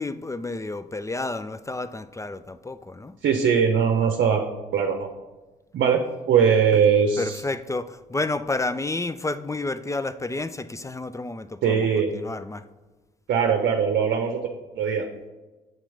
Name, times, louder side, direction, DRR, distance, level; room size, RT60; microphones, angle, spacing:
voice 1, 0.0-3.1 6.7-6.8 7.2-11.9 12.1-12.6, left 2 dB, 15° left, 14 dB, 0.4 m, -30 dB
voice 2, 3.2-4.4 4.7-5.1 5.7-6.0 6.3-7.4 11.6-12.1 13.3-14.4 14.8-15.0, right 7 dB, 60° right, 3 dB, 0.7 m, -20 dB
7.7 x 3.0 x 5.1 m, 1.2 s
hypercardioid pair, 45°, 20 cm